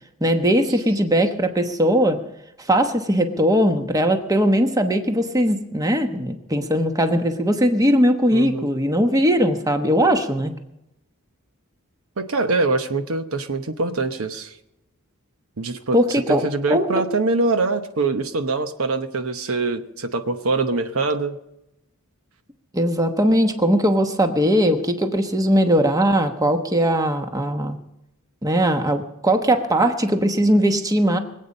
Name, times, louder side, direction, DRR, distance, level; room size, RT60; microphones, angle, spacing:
voice 1, 0.2-2.2 2.6-10.5 15.9-16.4 16.7-17.0 22.7-27.8 28.4-31.2, equal, 15° right, 6 dB, 1.0 m, -19 dB
voice 2, 8.3-8.7 12.2-14.5 15.6-16.0 16.3-21.3, right 3 dB, 70° right, 8 dB, 0.9 m, -23 dB
23.5 x 8.5 x 5.4 m, 0.85 s
head